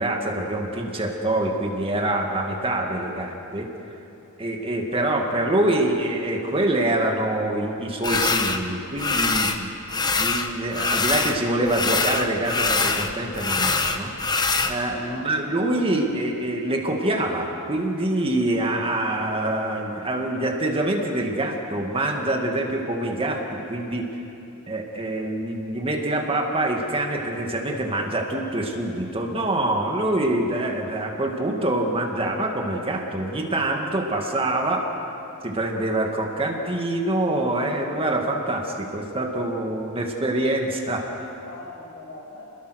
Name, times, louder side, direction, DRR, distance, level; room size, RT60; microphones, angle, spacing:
voice 1, 0.0-3.7 4.4-9.7 10.1-14.1 14.6-24.1 24.7-34.9 35.4-41.3, right 1 dB, 25° right, 1 dB, 2.1 m, -25 dB
sound 1, 8.0-8.6 9.0-9.6 9.9-11.4 11.7-14.7, left 3 dB, 20° left, 1.1 m, -23 dB
voice 2, 14.9-15.6 41.1-42.5, left 2 dB, 70° left, -2 dB, 6.7 m, -42 dB
28.0 x 21.0 x 6.5 m, 2.9 s
head